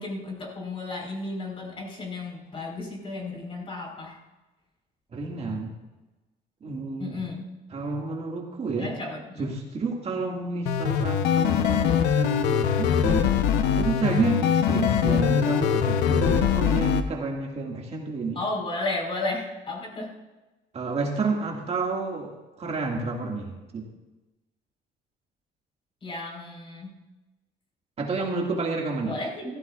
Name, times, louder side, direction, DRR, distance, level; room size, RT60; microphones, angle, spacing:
voice 1, 0.0-4.2 7.0-7.5 8.8-9.5 18.3-20.1 26.0-26.9 29.0-29.6, left 2 dB, 35° left, -1 dB, 4.4 m, -33 dB
voice 2, 5.1-5.7 6.6-7.2 7.7-8.9 9.4-13.3 13.8-18.4 20.7-23.9 28.0-29.2, right 3 dB, 40° right, 0 dB, 2.0 m, -30 dB
sound 1, 10.7-17.0, left 8 dB, 90° left, 0.9 m, -22 dB
16.0 x 14.5 x 2.4 m, 1.1 s
cardioid pair, 110°, 17 cm